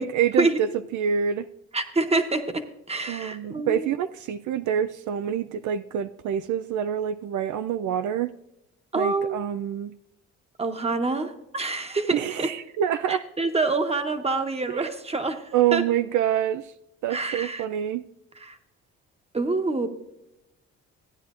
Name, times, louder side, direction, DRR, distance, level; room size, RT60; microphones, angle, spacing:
voice 1, 0.0-1.5 3.1-8.3 9.0-9.9 12.1-13.2 14.7-14.9 15.5-16.7 17.0-18.1, right 9 dB, 75° right, 10 dB, 0.5 m, -26 dB
voice 2, 1.7-3.8 8.9-9.4 10.6-12.5 13.1-15.8 17.1-17.6 18.4-18.6 19.3-19.9, right 3 dB, 20° right, 6 dB, 1.2 m, -26 dB
15.5 x 9.5 x 2.5 m, 0.88 s
cardioid pair, 90°, 30 cm